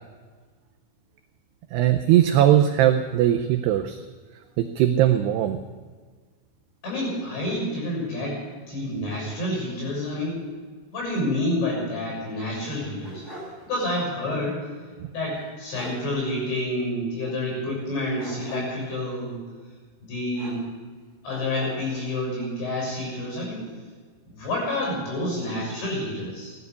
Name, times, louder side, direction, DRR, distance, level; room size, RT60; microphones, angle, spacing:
voice 1, 1.7-4.0 4.6-5.6, right 11 dB, 90° right, 6 dB, 2.3 m, -20 dB
voice 2, 6.8-10.4 10.9-13.3 13.6-14.7 15.1-19.4 20.0-20.6 21.2-23.7 24.3-26.6, left 1 dB, 65° left, -3 dB, 9.0 m, -29 dB
sound 1, 12.6-13.6 14.0-14.1 15.3-15.4 15.7-16.0 18.2-18.9 20.3-20.9 21.3-22.1, right 1 dB, 15° left, 6.0 m, -42 dB
17.5 x 12.0 x 6.9 m, 1.5 s
omnidirectional pair, 5.6 m